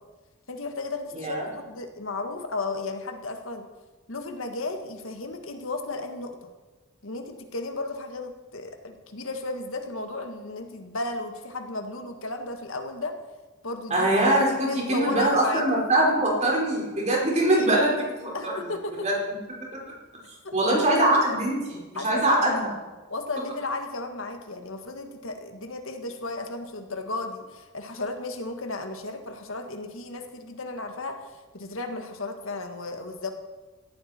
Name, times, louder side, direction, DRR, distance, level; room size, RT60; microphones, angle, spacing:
voice 1, 0.5-3.7 4.1-6.5 7.0-13.2 13.6-14.1 14.6-15.6 17.5-17.7 18.3-19.1 20.4-21.0 21.9-22.5 23.1-31.2 31.5-33.3, left 2 dB, 75° left, 5 dB, 1.8 m, -34 dB
voice 2, 1.1-1.4 13.9-18.5 19.0-19.1 20.5-22.7, right 1 dB, 35° right, -3 dB, 5.0 m, -23 dB
18.0 x 14.0 x 4.5 m, 1.2 s
head